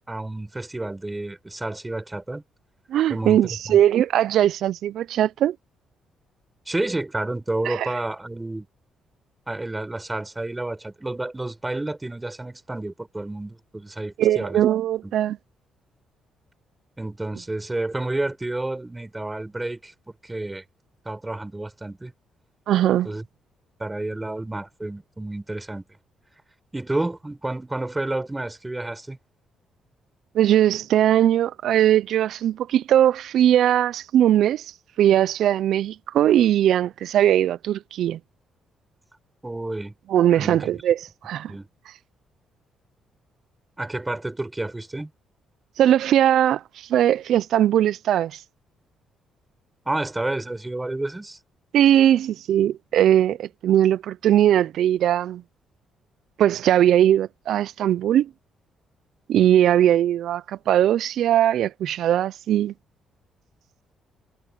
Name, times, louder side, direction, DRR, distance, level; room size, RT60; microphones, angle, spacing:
voice 1, 0.1-2.4 3.1-3.4 3.7-3.8 6.7-8.7 9.5-14.6 15.0-15.1 17.0-20.6 21.0-22.1 23.0-23.2 23.8-25.8 26.7-29.2 39.4-39.9 40.3-40.8 41.5-41.7 43.8-45.1 49.9-51.4, right 2 dB, 15° right, 6.1 m, -30 dB
voice 2, 2.9-5.6 7.7-7.9 14.2-15.4 22.7-23.1 30.3-34.6 35.0-38.2 40.1-41.0 41.2-41.5 45.8-48.4 51.7-55.4 56.4-58.3 59.3-62.7, right 11 dB, 75° right, 0.5 m, -20 dB
cardioid pair, 90°, 0 cm